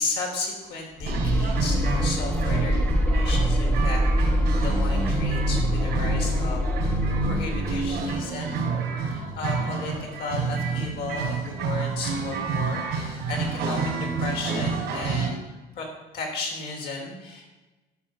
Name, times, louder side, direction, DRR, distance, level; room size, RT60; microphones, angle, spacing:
voice 1, 0.0-4.0 4.2-8.6 9.1-15.4 15.7-15.9 16.1-17.5, left 3 dB, 80° left, 0 dB, 3.1 m, -34 dB
sound 1, 1.0-8.2, equal, 10° left, 0.8 m, -25 dB
sound 2, 1.1-15.3, right 4 dB, 85° right, 3.1 m, -29 dB
11.5 x 6.1 x 5.5 m, 1.1 s
cardioid pair, 110°, 17 cm